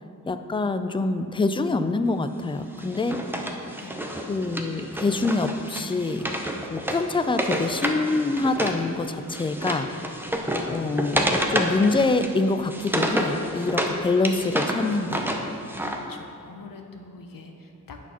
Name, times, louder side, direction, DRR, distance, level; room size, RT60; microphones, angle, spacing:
voice 1, 0.3-3.2 4.3-6.3 6.7-9.9 10.6-15.2, left 3 dB, 15° left, 10 dB, 0.3 m, -25 dB
Wood, 2.8-8.8 9.1-13.9 14.2-16.0, equal, 5° right, 0.7 m, -29 dB
voice 2, 3.2-4.0 15.8-18.0, left 3 dB, 75° left, 4 dB, 0.9 m, -45 dB
8.4 x 4.2 x 5.7 m, 2.5 s
wide cardioid pair, 75°, 34 cm